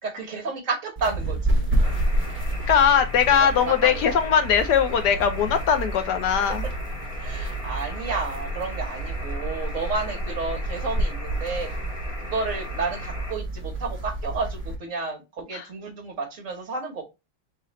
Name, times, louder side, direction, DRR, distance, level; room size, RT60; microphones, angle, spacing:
voice 1, 0.0-1.7 3.3-4.2 6.6-6.7 7.2-11.7 12.2-17.0, right 4 dB, 45° right, 1.1 m, -31 dB
sound 1, 1.0-14.8, right 1 dB, 10° right, 0.9 m, -29 dB
sound 2, 1.8-13.3, left 1 dB, 30° left, 0.7 m, -40 dB
voice 2, 2.7-6.6 15.5-15.6, left 8 dB, 70° left, 1.0 m, -20 dB
4.1 x 3.0 x 4.0 m
omnidirectional pair, 2.3 m